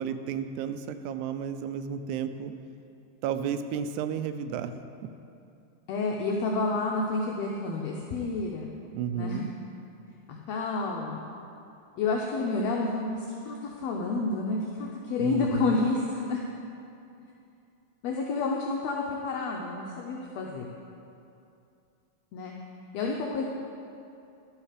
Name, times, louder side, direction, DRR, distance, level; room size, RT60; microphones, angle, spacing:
voice 1, 0.0-2.5 3.2-4.8 8.9-9.5 15.2-15.8, right 7 dB, 85° right, 9 dB, 1.9 m, -32 dB
voice 2, 5.9-8.7 9.1-9.5 10.5-11.2 12.0-16.4 18.0-20.7 22.3-22.5 22.9-23.4, left 3 dB, 75° left, -1 dB, 1.7 m, -29 dB
11.5 x 6.5 x 5.0 m, 2.7 s
omnidirectional pair, 3.3 m